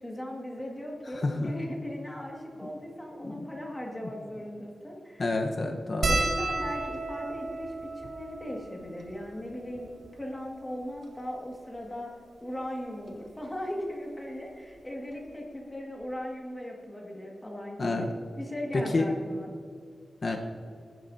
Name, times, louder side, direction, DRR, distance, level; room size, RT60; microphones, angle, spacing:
voice 1, 0.0-5.3 6.0-12.1 12.4-18.1 18.4-19.5, equal, 10° left, -2 dB, 2.0 m, -38 dB
voice 2, 1.2-1.5 2.6-2.7 3.2-3.4 5.2-6.2 17.8-18.1 18.7-19.0 20.2-20.4, left 2 dB, 45° left, 3 dB, 1.1 m, -28 dB
sound 1, 6.0-10.6 11.4-11.5 11.7-11.9 13.1-13.3 14.8-14.9 15.1-15.3, right 2 dB, 65° right, 1.2 m, -33 dB
18.5 x 11.0 x 2.8 m, 2.2 s
wide cardioid pair, 145°, 0 cm